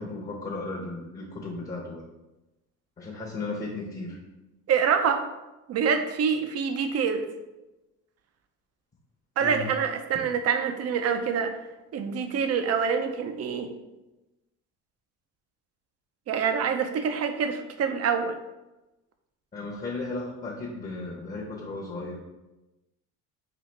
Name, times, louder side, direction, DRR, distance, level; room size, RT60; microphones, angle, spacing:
voice 1, 0.0-2.0 3.0-4.2 9.4-9.7 19.5-22.2, left 3 dB, 25° left, -3 dB, 0.9 m, -35 dB
voice 2, 4.7-5.2 5.7-7.2 9.4-11.5 11.9-13.7 16.3-18.4, right 6 dB, 45° right, 7 dB, 0.5 m, -26 dB
4.0 x 2.6 x 3.2 m, 1.0 s
supercardioid pair, 80°, 35 cm